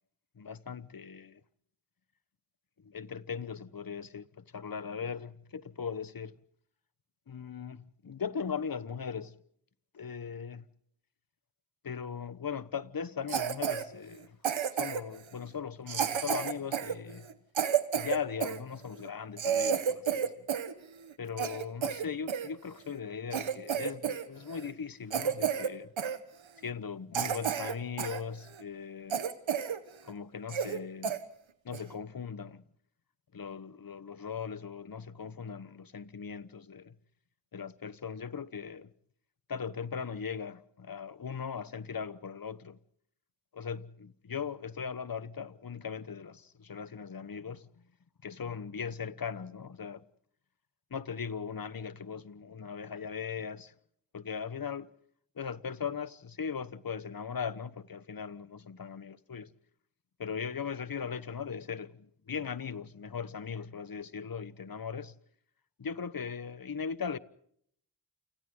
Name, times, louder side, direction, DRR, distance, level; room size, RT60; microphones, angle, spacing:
voice 1, 0.4-1.4 2.8-6.3 7.3-9.4 9.9-10.6 11.8-14.4 14.8-17.2 17.9-20.4 21.2-25.9 26.6-29.2 30.0-31.2 31.6-32.6 33.3-36.9 37.5-38.9 39.5-42.8 43.5-47.7 48.2-50.0 50.9-53.7 54.1-54.9 55.4-59.5 60.2-65.1 65.8-67.2, left 6 dB, 50° left, 1.2 m, -39 dB
Cough, 13.3-13.8 14.4-15.2 15.9-18.6 19.1-19.2 19.4-20.7 21.0-22.5 23.0-23.1 23.3-24.2 24.5-24.7 25.1-25.7 26.0-26.2 26.7-26.8 27.1-28.2 28.6-28.7 29.1-29.8 30.1-30.2 30.5-30.8 31.0-31.2 31.7-31.9, right 8 dB, 85° right, 1.5 m, -31 dB
30.0 x 28.5 x 3.8 m
cardioid pair, 40°, 45 cm